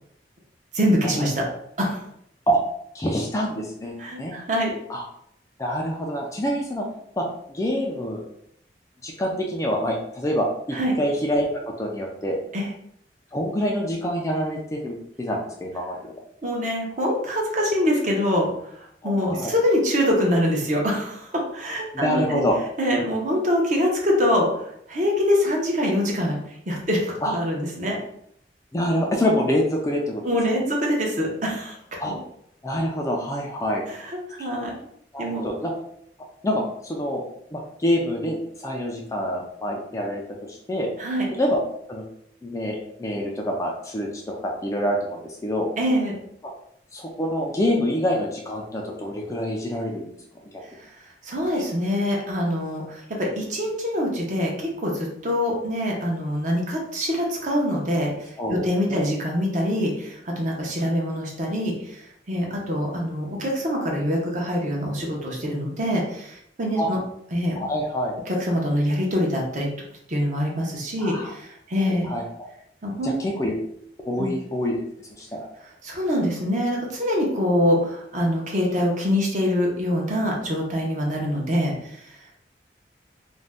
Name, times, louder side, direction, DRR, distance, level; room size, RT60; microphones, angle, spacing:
voice 1, 0.7-1.5 1.8-2.0 4.0-4.8 10.7-10.9 12.5-12.7 16.4-22.4 22.8-28.0 30.2-31.8 32.1-32.2 33.9-34.8 35.2-35.5 41.0-41.3 45.8-46.2 50.8-50.9 51.2-67.0 67.3-67.5 68.3-69.7 70.1-72.2 72.8-73.2 74.2-74.3 75.8-82.2, equal, 45° right, -1 dB, 0.7 m, -24 dB
voice 2, 2.9-4.3 4.9-5.0 5.6-6.8 7.2-8.2 9.0-12.4 13.3-16.1 19.0-19.5 21.9-22.6 27.2-27.3 28.7-30.2 32.0-32.1 32.6-33.8 34.4-34.5 35.1-35.7 36.4-37.2 37.5-40.2 40.5-40.9 41.3-41.6 41.9-42.0 42.4-45.7 46.9-50.1 58.4-58.6 58.9-59.1 66.8-66.9 67.6-68.2 71.0-71.3 72.0-72.3 73.0-73.5 74.1-74.8 75.2-75.5, equal, 15° left, 0 dB, 0.3 m, -26 dB
2.5 x 2.2 x 3.3 m, 0.73 s
head